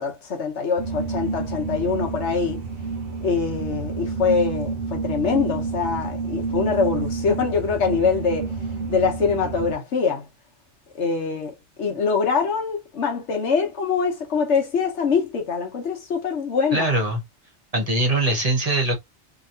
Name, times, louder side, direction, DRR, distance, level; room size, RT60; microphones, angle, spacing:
voice 1, 0.0-2.6 3.2-8.5 8.9-10.3 10.9-16.9, left 5 dB, 75° left, 1.2 m, -24 dB
sound 1, 0.8-9.7, right 4 dB, 60° right, 0.8 m, -29 dB
voice 2, 16.7-17.2 17.7-19.0, right 2 dB, 35° right, 1.0 m, -22 dB
3.0 x 2.9 x 2.5 m
omnidirectional pair, 1.2 m